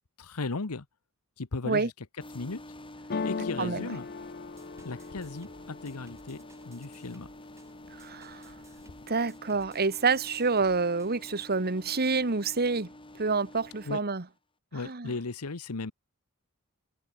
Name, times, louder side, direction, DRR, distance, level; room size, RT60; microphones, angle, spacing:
voice 1, 0.2-0.9 1.4-1.9 2.3-2.6 3.2-4.1 4.8-7.3 13.9-14.0 14.7-15.9, left 3 dB, 80° left, 1.1 m, -36 dB
sound 1, 2.2-14.0, left 1 dB, 25° left, 7.9 m, -48 dB
sound 2, 3.1-7.0 7.4-8.0 8.3-9.1, left 4 dB, 45° left, 0.6 m, -38 dB
voice 2, 3.6-3.9 7.9-8.5 9.1-12.9 13.1-14.2 14.8-15.1, right 4 dB, 45° right, 1.5 m, -28 dB
sound 3, 4.6-11.2, right 2 dB, 15° right, 6.3 m, -59 dB
open air
head